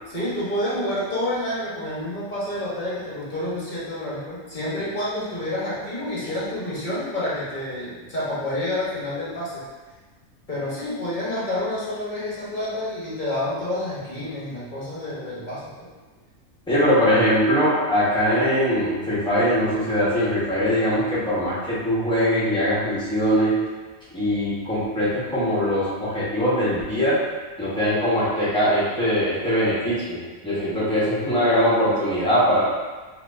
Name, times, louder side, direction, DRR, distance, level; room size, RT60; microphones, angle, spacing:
voice 1, 0.1-9.6 10.5-15.9, left 1 dB, 35° left, -8 dB, 1.2 m, -29 dB
voice 2, 16.7-23.5 24.1-27.2 27.6-32.6, equal, 5° left, -11 dB, 1.1 m, -21 dB
4.2 x 2.9 x 2.6 m, 1.3 s
omnidirectional pair, 1.4 m